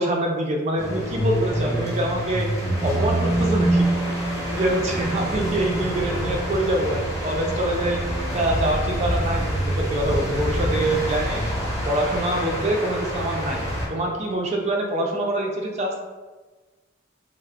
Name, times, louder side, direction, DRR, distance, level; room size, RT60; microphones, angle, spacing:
voice 1, 0.0-2.5 2.8-3.9 4.5-11.4 11.9-13.6 13.9-15.9, right 1 dB, 35° right, 1 dB, 0.4 m, -25 dB
sound 1, 0.8-13.9, right 1 dB, 15° left, 0.8 m, -26 dB
3.4 x 2.0 x 3.4 m, 1.3 s
head